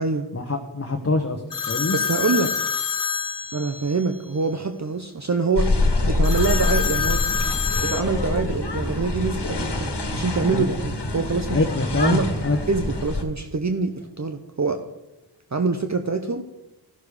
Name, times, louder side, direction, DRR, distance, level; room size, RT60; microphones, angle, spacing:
voice 1, 0.3-2.0 10.5-10.7 11.5-12.6, left 2 dB, 35° left, 4 dB, 1.1 m, -24 dB
sound 1, 1.5-4.1 6.2-8.0, left 6 dB, 50° left, 0.6 m, -26 dB
voice 2, 1.9-2.5 3.5-5.7 6.1-7.2 7.8-11.6 12.0-12.3 12.7-14.9 15.5-16.4, right 4 dB, 40° right, 6 dB, 0.8 m, -25 dB
sound 2, 5.6-13.2, left 2 dB, 65° left, 1.6 m, -25 dB
13.5 x 6.6 x 4.9 m, 0.96 s
wide cardioid pair, 40°, 43 cm